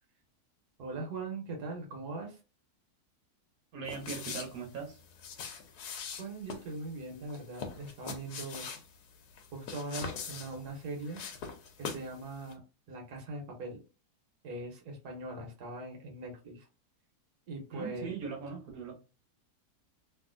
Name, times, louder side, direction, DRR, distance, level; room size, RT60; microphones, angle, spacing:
voice 1, 0.8-2.4 6.2-8.7 9.5-11.2 11.8-12.6 12.9-13.8 14.4-16.7 17.5-18.1, right 2 dB, 85° right, 1 dB, 1.5 m, -41 dB
voice 2, 3.7-5.0 17.7-18.9, right 6 dB, 65° right, 1 dB, 1.2 m, -40 dB
sound 1, 3.9-12.2 12.4-12.5, left 6 dB, 90° left, 1.2 m, -43 dB
3.1 x 2.5 x 2.5 m, 0.31 s
omnidirectional pair, 1.7 m